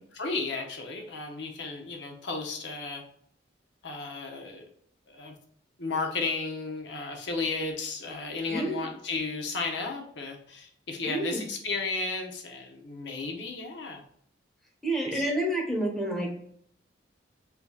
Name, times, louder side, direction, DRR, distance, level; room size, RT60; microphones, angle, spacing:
voice 1, 0.1-3.0 3.8-4.6 5.1-5.3 5.8-14.0 15.1-15.3, left 3 dB, 70° left, 3 dB, 0.7 m, -34 dB
voice 2, 8.5-8.9 11.0-11.4 14.8-16.3, right 1 dB, ahead, -2 dB, 1.1 m, -29 dB
6.6 x 2.7 x 2.3 m, 0.66 s
head